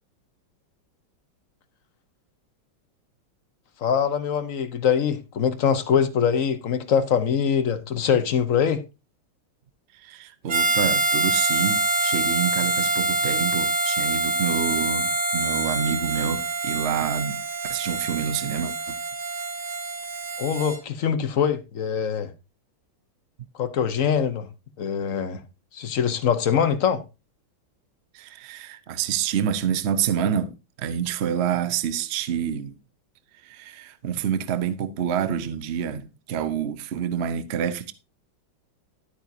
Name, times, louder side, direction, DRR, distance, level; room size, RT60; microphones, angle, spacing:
voice 1, 3.8-8.8 20.4-22.3 23.6-24.5 24.8-25.4 25.7-27.0, left 7 dB, 50° left, 1.1 m, -23 dB
voice 2, 9.9-17.4 17.7-19.0 28.1-32.8 33.4-37.9, right 8 dB, 55° right, 0.7 m, -27 dB
Harmonica, 10.5-20.8, right 2 dB, 35° right, 2.3 m, -25 dB
12.0 x 8.8 x 2.7 m
omnidirectional pair, 2.2 m